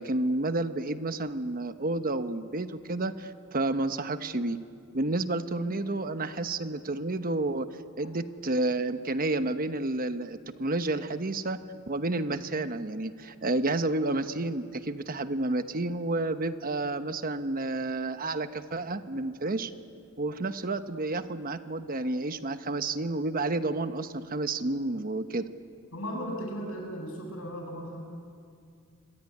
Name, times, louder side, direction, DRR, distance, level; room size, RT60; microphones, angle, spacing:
voice 1, 0.0-4.6 4.9-7.7 8.0-11.6 11.9-19.7 20.2-25.4, right 2 dB, 40° right, 10 dB, 1.1 m, -30 dB
voice 2, 25.9-28.0, equal, 70° left, 2 dB, 7.4 m, -37 dB
26.0 x 23.0 x 9.9 m, 2.3 s
head